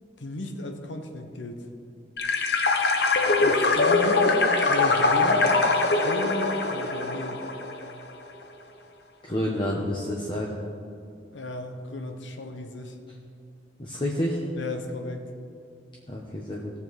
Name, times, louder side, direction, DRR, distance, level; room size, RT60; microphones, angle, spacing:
voice 1, 0.2-1.6 3.4-4.3 4.7-5.5 5.9-7.5 11.3-13.0 14.5-15.3, left 1 dB, 85° left, 5 dB, 1.1 m, -35 dB
sound 1, 2.2-7.9, left 3 dB, 60° left, 0.9 m, -22 dB
voice 2, 9.2-10.6 13.8-14.4 16.1-16.7, left 1 dB, 25° left, -2 dB, 0.9 m, -29 dB
17.5 x 7.0 x 4.1 m, 2.4 s
head